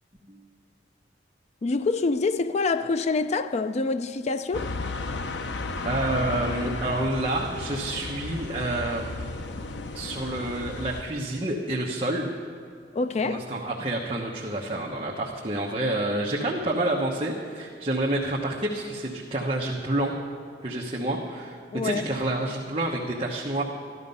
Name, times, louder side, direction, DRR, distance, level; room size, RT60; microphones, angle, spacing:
voice 1, 1.6-4.7 12.9-13.4 21.7-22.1, left 3 dB, 40° left, 0.4 m, -26 dB
sound 1, 4.5-11.0, left 3 dB, 75° left, 0.7 m, -34 dB
voice 2, 5.8-9.3 9.9-12.3 13.2-20.1 20.6-21.6 21.8-23.6, right 1 dB, 30° right, 1.2 m, -28 dB
14.0 x 12.5 x 5.5 m
head